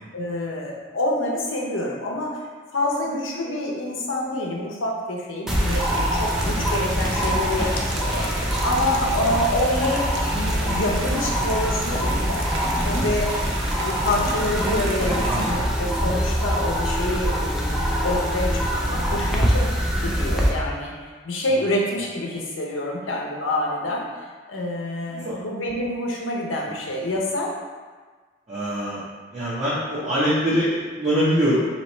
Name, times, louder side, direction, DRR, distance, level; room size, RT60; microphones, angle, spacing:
voice 1, 0.1-2.4 2.7-12.4 12.8-13.3 13.8-17.8 18.0-19.6 20.0-24.0 24.5-27.5, left 1 dB, 90° left, -1 dB, 0.7 m, -27 dB
sound 1, 5.5-20.5, equal, ahead, 0.4 m, -24 dB
sound 2, 5.5-15.5, right 2 dB, 75° right, 0.6 m, -34 dB
voice 2, 15.3-15.6 25.1-25.4 28.5-29.0 29.3-31.7, equal, 30° right, -11 dB, 0.8 m, -23 dB
3.1 x 3.0 x 4.3 m, 1.4 s
head